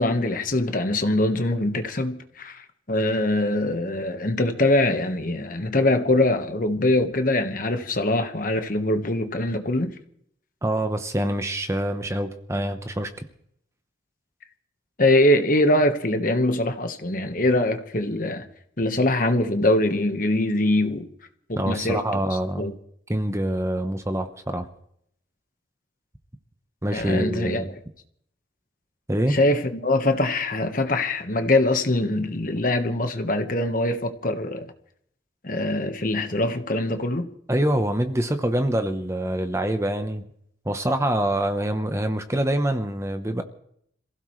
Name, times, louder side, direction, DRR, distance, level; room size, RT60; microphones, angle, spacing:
voice 1, 0.0-9.9 15.0-18.5 18.8-21.1 21.5-22.0 22.6-22.7 26.9-27.6 29.3-34.7 35.4-37.3, left 1 dB, 45° left, 1.4 m, -23 dB
voice 2, 10.6-13.1 21.6-22.7 23.1-24.7 26.8-27.7 29.1-29.4 37.5-40.2 40.7-43.4, right 1 dB, 15° right, 0.9 m, -25 dB
27.0 x 16.0 x 3.2 m
head